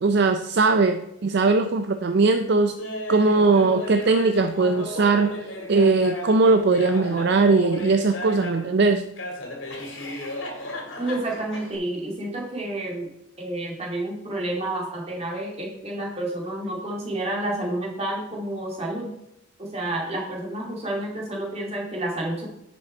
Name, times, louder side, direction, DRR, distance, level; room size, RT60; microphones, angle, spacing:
voice 1, 0.0-2.7 3.1-5.4 5.7-9.0, right 3 dB, 55° right, 8 dB, 0.4 m, -20 dB
Laughter, 2.8-8.7 9.2-11.8, left 1 dB, 70° left, 2.4 m, -34 dB
voice 2, 11.0-13.1 13.4-19.1 19.6-22.5, right 1 dB, 30° right, -1 dB, 2.3 m, -30 dB
9.9 x 6.2 x 4.4 m, 0.87 s
head